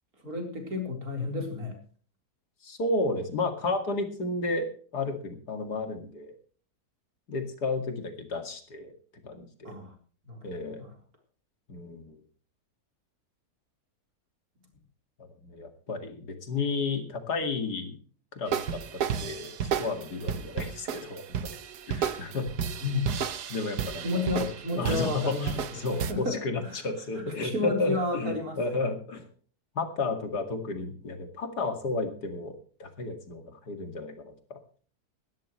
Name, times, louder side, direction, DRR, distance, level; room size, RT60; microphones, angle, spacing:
voice 1, 0.2-1.8 9.6-9.9 10.3-10.4 10.7-10.9 22.8-23.1 24.0-25.6 26.1-26.4 26.6-26.8 27.1-28.6, left 2 dB, 65° right, 2 dB, 4.6 m, -31 dB
voice 2, 2.6-6.3 7.3-8.9 9.2-9.7 10.4-10.8 11.7-12.2 15.2-18.0 18.3-19.5 19.8-21.5 21.9-22.5 23.5-24.2 24.8-29.3 29.7-32.5 32.8-34.6, left 3 dB, 85° left, 6 dB, 2.8 m, -32 dB
sound 1, 18.5-26.1, right 7 dB, 85° right, 1.6 m, -33 dB
19.0 x 13.0 x 3.2 m, 0.44 s
omnidirectional pair, 1.7 m